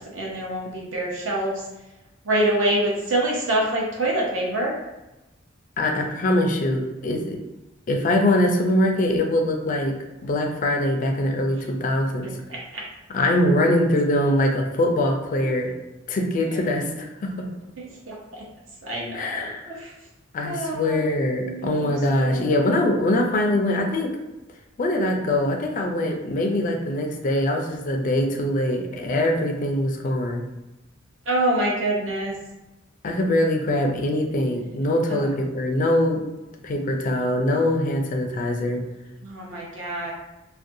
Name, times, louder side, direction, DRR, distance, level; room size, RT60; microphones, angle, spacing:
voice 1, 0.0-1.6 2.2-4.7 12.2-12.8 15.4-15.5 16.5-16.6 16.9-17.0 17.8-18.4 18.8-19.9 20.4-21.1 21.4-22.5 31.3-32.3 35.1-35.3 39.2-40.1, right 1 dB, 70° right, -3 dB, 0.7 m, -26 dB
voice 2, 5.8-7.4 7.9-10.0 10.2-12.3 13.1-15.7 16.1-17.4 19.1-19.7 20.3-24.2 24.8-30.4 33.0-36.2 36.6-38.8, left 1 dB, 40° left, 3 dB, 0.4 m, -23 dB
2.5 x 2.2 x 2.6 m, 1.0 s
head